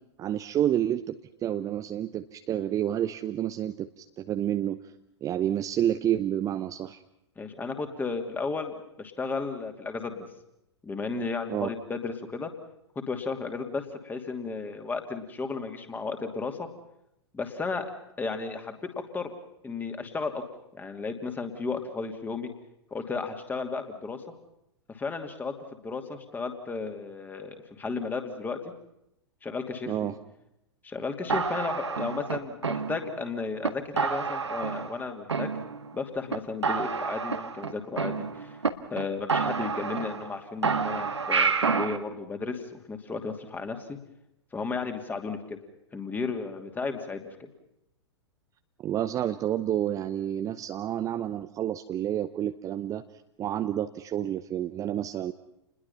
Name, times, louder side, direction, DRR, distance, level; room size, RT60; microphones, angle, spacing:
voice 1, 0.2-4.9 5.2-7.0 11.5-11.7 29.9-30.2 48.8-53.0 53.4-55.3, right 11 dB, 25° right, 8 dB, 0.9 m, -29 dB
voice 2, 7.4-10.3 10.8-12.5 12.9-16.7 17.3-17.9 18.2-19.3 19.6-20.4 20.7-22.5 22.9-24.2 24.9-25.5 25.8-28.7 29.4-30.1 30.8-35.5 35.9-38.6 38.9-44.0 44.5-45.6 45.9-47.5, left 4 dB, 10° left, 6 dB, 2.8 m, -34 dB
sound 1, 31.3-33.2 33.6-33.7 34.0-35.0 35.3-36.0 36.3-36.4 36.6-38.7 39.0-39.1 39.3-40.3 40.6-42.0, right 5 dB, 75° right, 1.5 m, -29 dB
29.0 x 21.0 x 5.7 m, 0.81 s
figure-of-eight pair, 100°, 15 cm